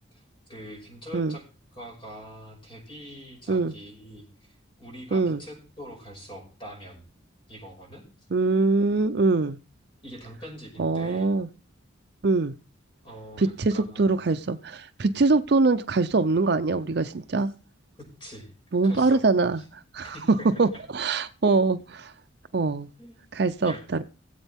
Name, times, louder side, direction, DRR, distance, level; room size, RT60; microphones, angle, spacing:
voice 1, 0.1-1.4 1.7-7.0 7.5-8.0 10.0-11.3 13.0-14.2 18.0-18.5 18.8-19.2 19.5-19.7 20.0-20.8 23.0-23.2 23.6-23.8, equal, 25° left, 5.8 m, -44 dB
voice 2, 8.3-9.6 10.8-11.5 12.2-12.5 13.4-17.5 18.7-19.6 19.9-20.1 20.6-22.1 22.5-22.9 23.3-24.0, right 3 dB, 55° right, 0.5 m, -23 dB
19.0 x 8.0 x 3.5 m
head